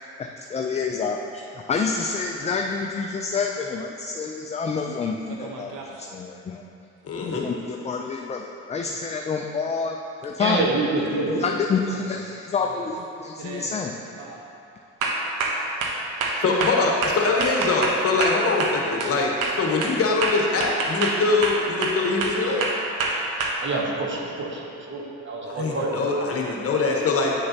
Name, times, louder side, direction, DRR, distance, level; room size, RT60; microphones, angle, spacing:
voice 1, 0.2-5.7 6.0-6.6 7.2-10.0 10.2-10.7 11.4-13.9, left 5 dB, 20° left, 2 dB, 0.4 m, -28 dB
sound 1, 5.3-6.0 10.2-10.3 11.8-12.1 12.6-12.9 13.4-13.7 14.2-14.4 15.0-19.2 19.4-23.5, right 3 dB, 80° right, 1.0 m, -27 dB
voice 2, 7.0-7.5 16.4-22.6 25.5-27.3, left 3 dB, 45° left, -1 dB, 1.2 m, -23 dB
voice 3, 10.4-11.5 23.6-26.2, right 2 dB, 40° right, -2 dB, 1.2 m, -27 dB
9.1 x 6.5 x 2.8 m, 2.7 s
cardioid pair, 100°, 31 cm